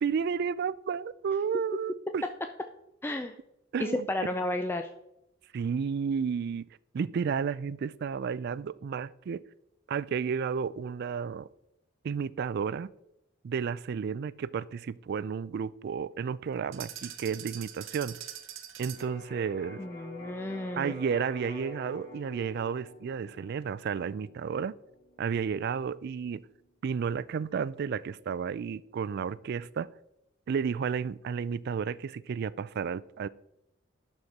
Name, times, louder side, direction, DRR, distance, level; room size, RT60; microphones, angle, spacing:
voice 1, 0.0-2.2 3.7-4.1 5.5-6.7 6.9-9.4 9.9-11.5 12.0-12.9 13.4-18.2 18.8-19.8 20.7-24.8 25.2-26.5 26.8-29.9 30.5-33.3, right 6 dB, 55° right, 0.3 m, -32 dB
voice 2, 3.0-3.3 3.8-4.9 19.8-20.9, left 1 dB, 10° left, 0.4 m, -32 dB
sound 1, 16.7-19.2, right 11 dB, 85° right, 0.7 m, -43 dB
Electric guitar, 19.0-26.7, left 3 dB, 45° left, 3.0 m, -47 dB
11.5 x 4.3 x 4.7 m
head